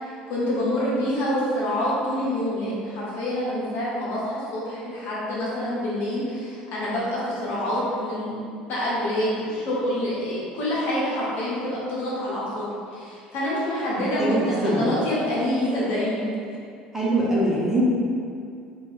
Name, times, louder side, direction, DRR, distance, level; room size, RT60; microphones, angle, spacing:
voice 1, 0.0-8.4 8.6-16.3, left 1 dB, 55° left, -7 dB, 1.1 m, -27 dB
voice 2, 14.2-14.9 16.9-17.9, right 1 dB, 10° right, -7 dB, 1.1 m, -23 dB
3.5 x 2.7 x 3.6 m, 2.4 s
figure-of-eight pair, 65°, 4 cm